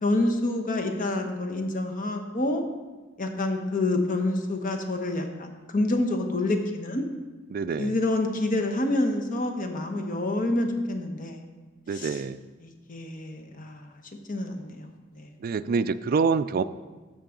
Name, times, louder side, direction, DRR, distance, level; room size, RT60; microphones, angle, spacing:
voice 1, 0.0-2.6 3.2-7.0 7.8-11.4 11.9-12.1 12.6-14.0 14.3-15.3, left 2 dB, 40° left, 5 dB, 0.9 m, -28 dB
voice 2, 7.5-8.0 11.9-12.4 15.4-16.6, right 5 dB, 45° right, 12 dB, 0.3 m, -26 dB
13.0 x 5.6 x 3.8 m, 1.3 s
head